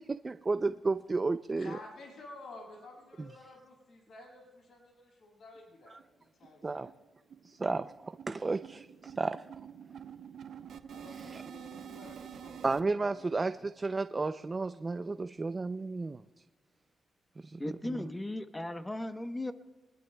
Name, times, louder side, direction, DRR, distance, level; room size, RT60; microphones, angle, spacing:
voice 1, 0.0-1.8 3.2-3.3 6.6-6.9 7.4-9.4 11.3-11.4 12.6-16.2 17.4-17.6, right 3 dB, 30° right, 10 dB, 0.4 m, -33 dB
voice 2, 1.5-6.9 10.9-12.7 13.1-13.3, left 2 dB, 65° left, -1 dB, 7.0 m, -51 dB
sound 1, 5.5-5.6 6.0-6.1 6.4-6.6 6.9-12.8, right 8 dB, 70° right, 0.8 m, -48 dB
voice 3, 17.6-19.5, left 1 dB, 15° left, 8 dB, 1.0 m, -36 dB
28.0 x 21.0 x 2.3 m, 1.3 s
cardioid pair, 100°, 0 cm